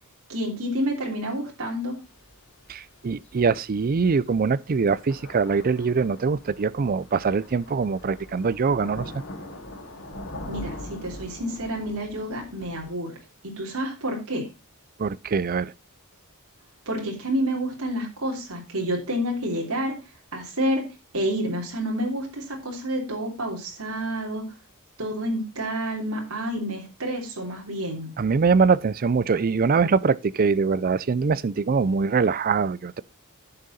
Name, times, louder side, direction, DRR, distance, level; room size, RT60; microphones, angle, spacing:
voice 1, 0.3-1.9 10.5-13.2 13.6-14.4 16.9-20.0 20.3-20.8 21.1-24.4 25.0-28.1, equal, 85° right, 3.1 m, -29 dB
Thunder / Rain, 2.0-12.9, left 1 dB, 55° left, 2.9 m, -42 dB
voice 2, 2.7-9.2 15.0-15.7 28.2-33.0, right 5 dB, 40° right, 0.4 m, -23 dB
11.0 x 6.4 x 4.1 m
head